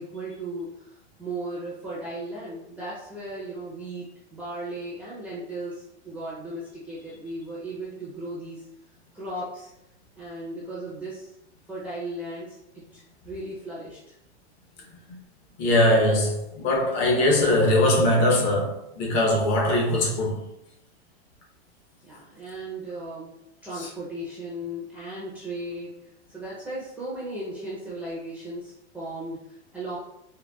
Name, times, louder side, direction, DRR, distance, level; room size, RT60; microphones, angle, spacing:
voice 1, 0.0-8.7 9.1-9.7 10.2-11.3 11.7-14.1 22.0-23.3 23.6-26.0 26.3-30.0, right 1 dB, 5° right, 0.5 m, -36 dB
voice 2, 15.6-20.4 23.8-23.9, left 1 dB, 40° left, 0.8 m, -21 dB
4.0 x 2.2 x 2.2 m
hypercardioid pair, 140°, 34 cm